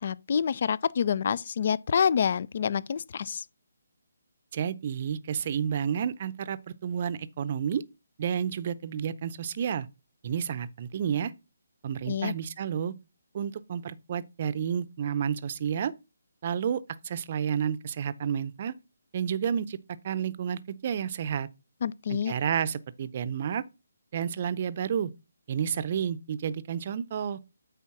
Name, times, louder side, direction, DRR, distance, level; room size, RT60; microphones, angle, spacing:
voice 1, 0.0-3.4 12.1-12.3 21.8-22.3, left 7 dB, 50° left, 0.4 m, -27 dB
voice 2, 4.5-7.8 8.2-9.9 10.2-11.3 11.8-12.9 13.3-15.9 16.4-18.7 19.1-19.8 20.0-21.5 22.1-23.6 24.1-25.1 25.5-27.4, right 8 dB, 40° right, 0.6 m, -30 dB
8.5 x 3.5 x 5.8 m
figure-of-eight pair, 155°, 0 cm